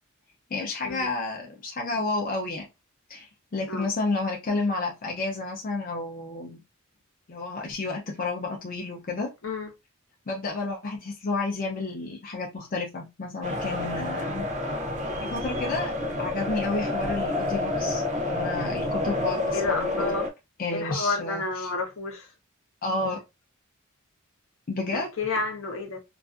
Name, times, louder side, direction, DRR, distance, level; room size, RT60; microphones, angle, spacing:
voice 1, 0.5-2.7 3.1-6.6 7.3-9.3 10.3-14.5 15.2-15.9 16.2-19.9 20.6-21.7 22.8-23.2 24.7-25.1, left 3 dB, 40° left, 0.5 m, -31 dB
sound 1, 13.4-20.3, left 2 dB, 35° right, 0.5 m, -29 dB
voice 2, 19.5-20.2 20.7-22.3 24.9-26.0, left 3 dB, 65° left, 0.8 m, -30 dB
2.4 x 2.4 x 2.4 m
head